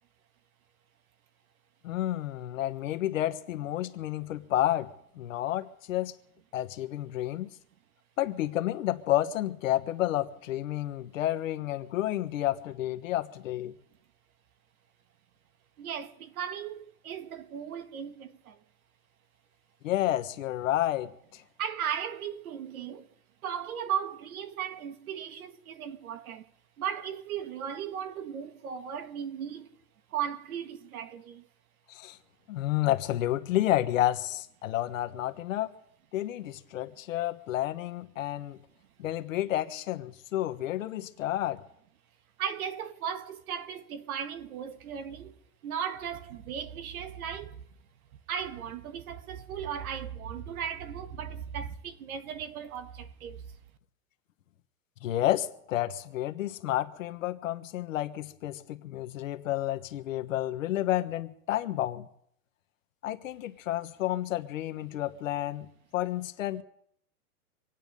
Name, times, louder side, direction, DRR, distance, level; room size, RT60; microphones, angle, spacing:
voice 1, 1.8-4.9 5.1-6.1 6.5-7.5 8.2-13.7 19.8-21.4 31.9-32.2 32.5-35.7 36.1-38.6 39.0-41.6 55.0-62.1 63.0-65.7 65.9-66.6, left 13 dB, 60° left, 1.3 m, -30 dB
voice 2, 15.8-18.6 21.6-23.1 23.4-26.5 26.8-29.7 30.1-31.5 42.4-45.3 45.6-47.6 48.3-53.4, right 8 dB, 70° right, 1.5 m, -36 dB
25.5 x 9.1 x 5.3 m
supercardioid pair, 175°, 44 cm